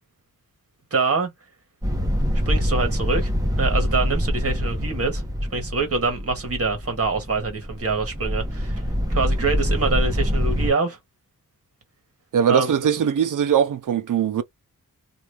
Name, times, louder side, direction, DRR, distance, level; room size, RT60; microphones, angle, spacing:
voice 1, 0.9-1.3 2.4-5.2 5.5-8.8 9.1-11.0 12.5-12.7, right 4 dB, 45° right, 1.5 m, -25 dB
sound 1, 1.8-10.7, equal, 10° right, 1.0 m, -25 dB
voice 2, 12.3-14.4, right 8 dB, 65° right, 0.6 m, -21 dB
2.8 x 2.5 x 3.3 m
wide cardioid pair, 170°, 34 cm